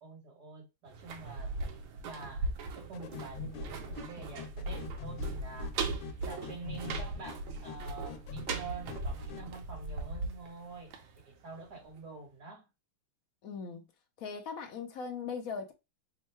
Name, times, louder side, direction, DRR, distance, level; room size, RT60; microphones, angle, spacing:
voice 1, 0.0-5.8 6.2-10.9 11.3-12.7, right 3 dB, 60° right, 1.7 m, -47 dB
sound 1, 0.9-11.7 12.0-12.1, right 3 dB, 80° right, 1.5 m, -39 dB
sound 2, 2.9-9.5, left 6 dB, 85° left, 1.4 m, -46 dB
voice 2, 13.4-13.8 14.2-15.7, left 5 dB, 70° left, 0.8 m, -39 dB
3.6 x 2.2 x 4.3 m
omnidirectional pair, 2.1 m